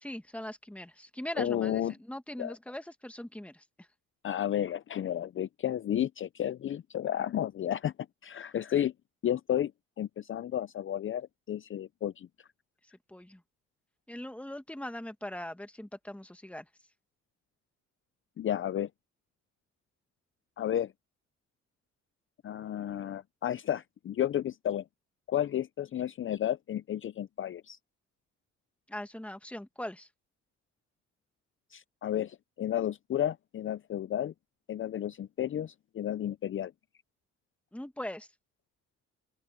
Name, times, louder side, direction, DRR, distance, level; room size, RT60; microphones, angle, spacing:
voice 1, 0.0-3.6 13.1-13.4 14.1-16.7 28.9-30.1 37.7-38.3, left 1 dB, 5° left, 1.8 m, -40 dB
voice 2, 1.4-1.9 2.4-2.6 4.2-7.9 8.2-8.9 9.2-9.7 10.0-12.3 18.4-18.9 20.6-20.9 22.4-24.8 25.3-27.8 31.7-34.3 34.7-36.7, left 11 dB, 40° left, 0.5 m, -32 dB
open air
cardioid pair, 90°, 30 cm